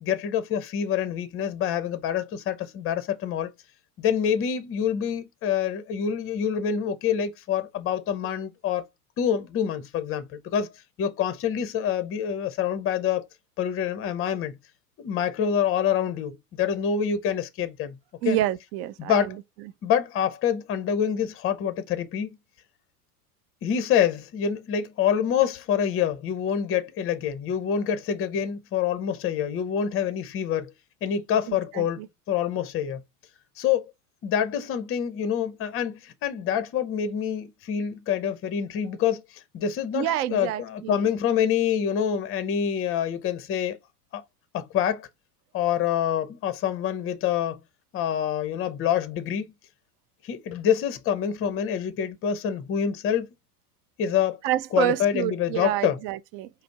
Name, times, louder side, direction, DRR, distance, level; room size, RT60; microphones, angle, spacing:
voice 1, 0.0-3.5 4.0-8.8 9.2-10.7 11.0-13.3 13.6-14.6 15.0-18.0 18.2-18.4 19.0-19.4 19.8-22.4 23.6-30.7 31.0-32.0 32.3-33.0 33.6-33.9 34.2-43.8 44.1-44.2 44.5-45.1 45.5-47.6 47.9-49.4 50.2-53.3 54.0-54.4 54.7-56.0, left 8 dB, 30° left, 0.7 m, -26 dB
voice 2, 18.2-19.4 19.6-19.7 31.5-32.1 39.9-41.1 54.4-56.5, right 13 dB, 35° right, 0.4 m, -28 dB
5.0 x 2.1 x 4.5 m
hypercardioid pair, 100°, 46 cm